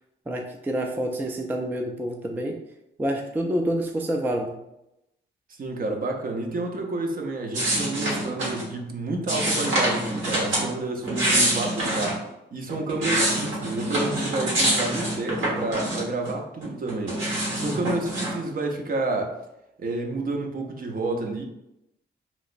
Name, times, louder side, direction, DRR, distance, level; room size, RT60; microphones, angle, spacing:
voice 1, 0.3-2.6 3.0-4.5 17.6-17.9, right 1 dB, 10° right, 3 dB, 0.3 m, -28 dB
voice 2, 5.6-12.2 12.5-17.2 17.6-19.4 19.8-21.4, right 2 dB, 45° right, 2 dB, 0.6 m, -30 dB
sound 1, 7.5-8.7 9.3-10.7 11.0-12.2 12.7-16.3 16.6-18.3, right 1 dB, 75° right, 1.3 m, -25 dB
3.1 x 2.9 x 2.5 m, 0.87 s
cardioid pair, 80°, 20 cm